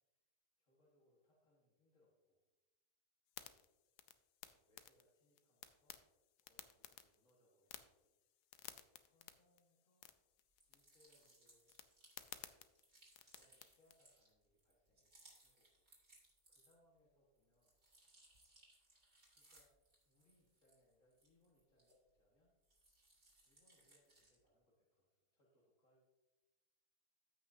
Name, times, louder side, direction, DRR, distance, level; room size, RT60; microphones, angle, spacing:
voice 1, 0.6-2.4 4.4-6.0 6.4-8.5 9.0-10.1 10.7-11.8 13.2-15.8 16.1-18.0 19.3-19.7 20.0-22.5 23.4-26.1, left 1 dB, 55° left, -4 dB, 1.9 m, -77 dB
sound 1, 3.3-14.0, left 11 dB, 85° left, 1.2 m, -59 dB
sound 2, 10.5-17.0 17.4-22.3 22.6-24.5, right 2 dB, 50° right, 2.7 m, -69 dB
14.5 x 6.1 x 2.7 m, 1.0 s
omnidirectional pair, 1.6 m